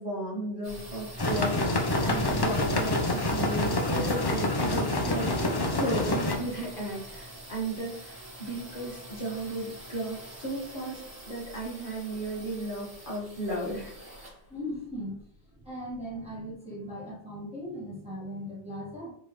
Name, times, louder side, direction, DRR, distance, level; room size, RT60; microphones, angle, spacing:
voice 1, 0.0-11.0 11.2-13.9, right 1 dB, 55° left, -5 dB, 1.5 m, -35 dB
sound 1, 0.6-16.3, equal, 40° right, 1.9 m, -44 dB
sound 2, 1.2-6.4, left 1 dB, 30° left, 0.5 m, -27 dB
voice 2, 14.5-15.2 15.5-19.1, equal, 5° right, -7 dB, 1.5 m, -38 dB
4.6 x 3.3 x 3.0 m, 0.65 s
omnidirectional pair, 1.0 m